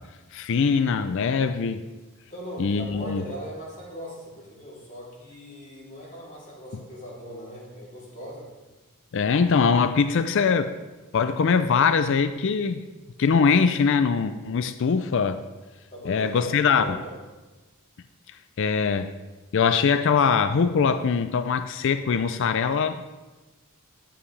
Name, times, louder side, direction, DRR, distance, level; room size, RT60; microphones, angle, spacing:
voice 1, 0.3-1.8 2.6-3.2 9.1-10.7 11.1-12.9 13.2-15.4 16.0-17.0 18.6-19.1 19.5-23.1, left 5 dB, 60° left, 11 dB, 0.4 m, -22 dB
voice 2, 2.3-8.5 15.9-17.2, equal, 35° left, -6 dB, 2.9 m, -39 dB
11.5 x 7.3 x 3.2 m, 1.2 s
head